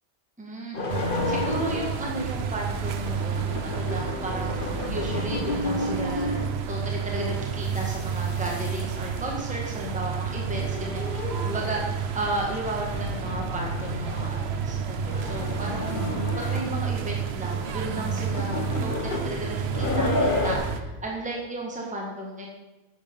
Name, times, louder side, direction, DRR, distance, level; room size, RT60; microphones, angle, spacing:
voice 1, 0.4-22.5, right 1 dB, 5° right, -1 dB, 1.5 m, -34 dB
sound 1, 0.7-2.0 2.7-6.7 7.5-9.1 10.3-11.9 12.5-12.6 12.9-13.4 13.7-14.4 14.9-16.9 17.4-20.6, left 2 dB, 50° left, 1.4 m, -31 dB
sound 2, 0.9-20.8, right 6 dB, 65° right, 1.0 m, -30 dB
10.0 x 7.7 x 5.3 m, 1.1 s
omnidirectional pair, 1.2 m